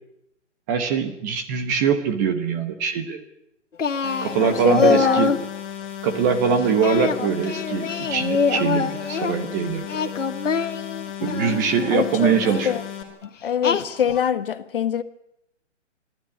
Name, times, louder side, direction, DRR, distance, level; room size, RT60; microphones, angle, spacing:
voice 1, 0.7-3.2 4.2-5.3 6.0-10.1 11.2-12.8, right 6 dB, 15° right, 0.9 m, -23 dB
Singing, 3.8-5.5 6.8-9.4 9.8-11.6 12.4-12.7 13.6-14.3, left 5 dB, 85° left, 1.8 m, -24 dB
sound 1, 4.0-13.0, left 9 dB, 20° left, 3.1 m, -35 dB
voice 2, 4.4-5.2 11.2-12.3 12.6-12.8 13.4-15.0, left 8 dB, 45° left, 1.3 m, -24 dB
28.0 x 12.0 x 9.8 m
hypercardioid pair, 160°, 37 cm